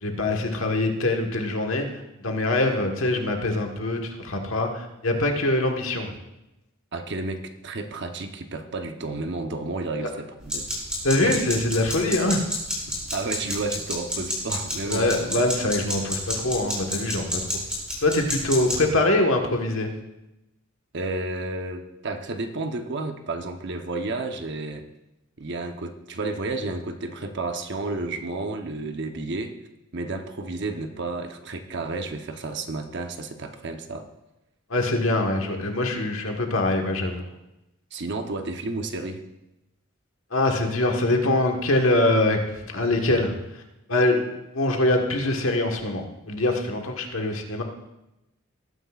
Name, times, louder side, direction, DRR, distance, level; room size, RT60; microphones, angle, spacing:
voice 1, 0.0-6.1 11.0-12.5 14.9-17.4 18.0-19.9 34.7-37.3 40.3-42.4 42.6-43.6 43.9-44.2 44.5-47.6, left 2 dB, 70° left, 3 dB, 1.5 m, -23 dB
voice 2, 6.9-10.7 11.2-11.4 13.1-15.2 20.9-24.8 25.4-29.6 29.9-34.1 37.9-39.2, right 2 dB, 55° right, 6 dB, 0.9 m, -31 dB
sound 1, 10.4-18.8, left 1 dB, 5° right, 3.5 m, -31 dB
18.5 x 9.7 x 2.4 m, 0.93 s
head